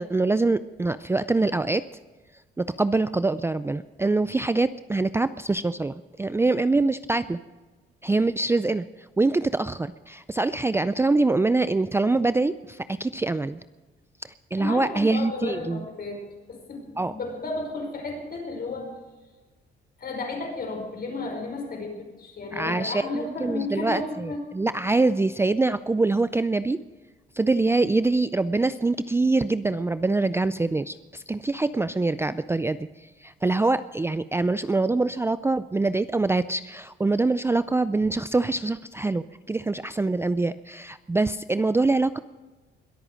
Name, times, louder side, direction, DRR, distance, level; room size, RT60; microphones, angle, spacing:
voice 1, 0.0-1.8 2.6-7.4 8.0-8.8 9.2-13.6 14.2-15.8 17.0-17.1 22.5-26.8 27.4-32.9 33.2-42.2, right 3 dB, 10° right, 13 dB, 0.4 m, -24 dB
voice 2, 14.6-16.2 16.5-18.9 20.0-24.4, left 3 dB, 50° left, 2 dB, 5.3 m, -33 dB
21.5 x 8.8 x 6.3 m, 1.3 s
cardioid pair, 90°, 20 cm